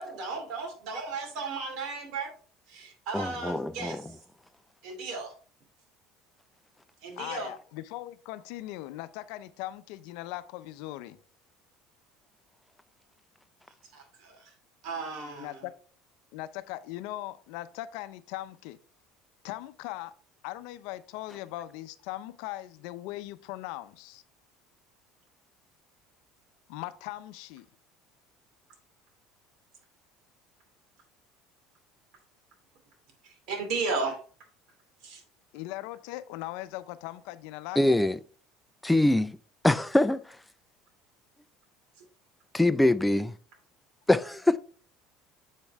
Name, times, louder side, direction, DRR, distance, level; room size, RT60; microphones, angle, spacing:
voice 1, 0.0-2.3 2.7-4.2 4.8-5.3 7.0-7.5 13.9-14.5 14.8-15.6 33.2-34.2 35.0-35.2 42.0-42.1, right 4 dB, 65° right, 2.5 m, -35 dB
voice 2, 3.1-4.0 37.8-38.2 38.8-39.4 39.6-40.2 42.5-43.3 44.1-44.6, left 1 dB, 5° left, 0.4 m, -23 dB
voice 3, 7.2-11.2 15.4-15.7 16.3-18.8 19.4-20.1 20.4-24.2 26.7-27.7 35.5-38.0, left 16 dB, 75° left, 0.5 m, -39 dB
7.4 x 5.2 x 3.5 m
supercardioid pair, 115°, 0 cm